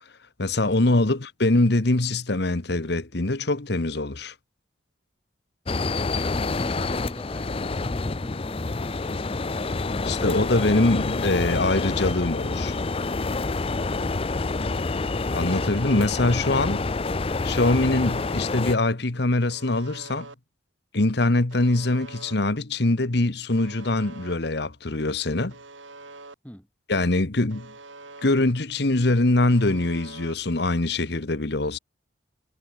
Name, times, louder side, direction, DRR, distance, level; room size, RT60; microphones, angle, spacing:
voice 1, 0.4-4.3 10.0-12.8 15.3-16.8 17.4-20.3 20.9-25.5 26.9-27.7 28.2-31.8, left 2 dB, 60° left, 1.3 m, -23 dB
sound 1, 5.7-18.7, left 3 dB, 30° left, 0.5 m, -27 dB
voice 2, 6.1-10.9 26.4-26.7, equal, 5° left, 4.4 m, -43 dB
Alarm, 15.5-16.4 17.5-18.4 19.5-20.4 21.5-22.4 23.5-24.4 25.5-26.4 27.5-28.4 29.5-30.3, right 3 dB, 85° right, 6.3 m, -45 dB
head